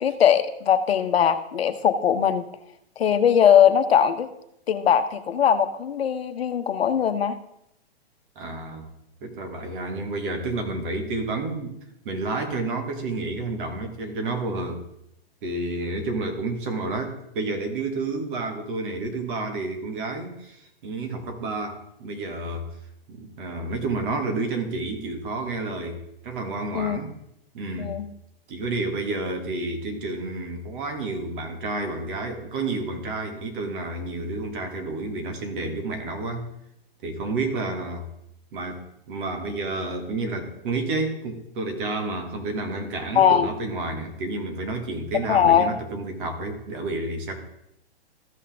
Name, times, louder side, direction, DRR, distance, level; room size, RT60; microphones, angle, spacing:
voice 1, 0.0-2.5 3.0-4.3 4.7-7.3 26.7-27.0 27.7-28.1 43.1-43.5 45.3-45.8, left 8 dB, 75° left, 9 dB, 0.9 m, -20 dB
voice 2, 8.4-8.9 9.2-11.8 12.1-14.8 15.4-22.7 23.1-27.1 27.5-28.0 28.5-36.5 37.0-38.1 38.5-47.3, right 2 dB, 55° right, 5 dB, 2.0 m, -30 dB
14.0 x 5.7 x 3.6 m, 0.78 s
hypercardioid pair, 130°, 31 cm